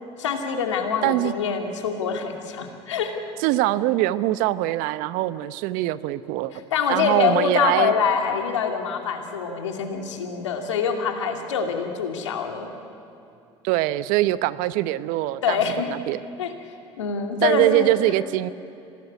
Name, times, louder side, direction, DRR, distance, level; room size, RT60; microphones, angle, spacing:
voice 1, 0.2-3.1 6.5-12.7 15.4-15.9 16.4-16.5 17.0-17.9, left 6 dB, 85° left, 4 dB, 2.5 m, -25 dB
voice 2, 1.0-1.3 3.4-6.5 6.9-7.9 13.6-15.6 15.9-16.2 17.4-18.5, right 16 dB, 65° right, 15 dB, 0.9 m, -23 dB
26.0 x 18.0 x 9.8 m, 2.6 s
hypercardioid pair, 65°, 15 cm